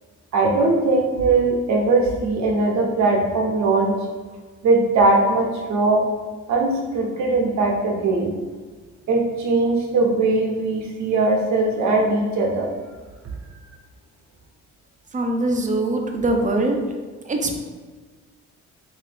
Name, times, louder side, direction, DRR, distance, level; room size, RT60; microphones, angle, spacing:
voice 1, 0.3-4.0 4.6-6.0 6.5-8.3 9.1-12.7, right 3 dB, 70° right, 0 dB, 0.9 m, -20 dB
voice 2, 15.1-16.8 17.3-17.6, right 2 dB, 25° right, 3 dB, 0.5 m, -22 dB
3.1 x 2.7 x 3.4 m, 1.4 s
cardioid pair, 90°, 30 cm